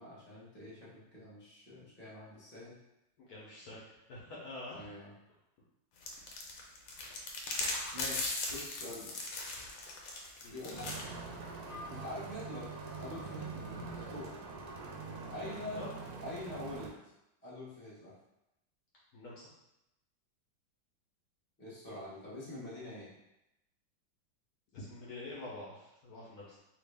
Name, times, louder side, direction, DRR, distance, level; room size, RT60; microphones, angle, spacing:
voice 1, 0.0-2.8 4.7-5.1 7.9-9.1 10.5-11.1 11.9-12.7 13.0-14.3 15.3-15.8 16.2-17.0 17.4-18.1 21.6-23.1, left 1 dB, 10° left, -9 dB, 0.7 m, -45 dB
voice 2, 3.2-4.8 10.4-10.6 15.3-15.9 19.1-19.5 24.7-26.6, left 2 dB, 65° left, -6 dB, 1.1 m, -47 dB
sound 1, 6.0-11.0, left 2 dB, 90° left, 1.4 m, -38 dB
sound 2, 10.7-16.9, right 4 dB, 75° right, 0.9 m, -44 dB
Wind instrument woodwind instrument, 11.6-15.3, equal, 45° right, 0.7 m, -52 dB
3.2 x 2.4 x 3.3 m, 0.89 s
omnidirectional pair, 2.0 m